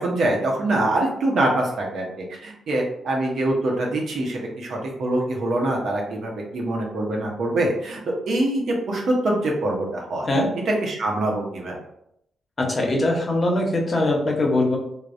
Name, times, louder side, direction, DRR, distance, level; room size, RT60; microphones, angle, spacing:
voice 1, 0.0-8.0 8.3-10.3 10.7-11.8, right 1 dB, 65° right, -1 dB, 0.7 m, -24 dB
voice 2, 12.6-14.8, left 1 dB, 45° left, 0 dB, 0.9 m, -21 dB
3.3 x 2.1 x 2.6 m, 0.76 s
hypercardioid pair, 45°, 0 cm